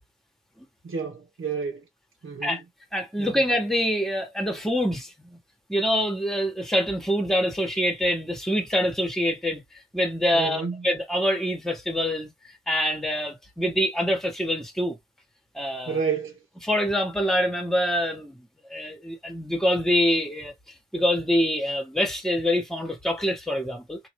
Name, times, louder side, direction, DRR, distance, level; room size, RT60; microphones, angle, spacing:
voice 1, 0.8-1.8 2.2-2.6 3.2-3.4 10.3-10.9 15.9-16.4, right 6 dB, 70° right, 1.0 m, -30 dB
voice 2, 2.9-5.4 5.7-12.3 12.7-15.0 15.5-16.0 16.6-20.5 20.9-24.0, equal, ahead, 1.3 m, -25 dB
3.9 x 2.4 x 3.1 m
wide cardioid pair, 75°, 21 cm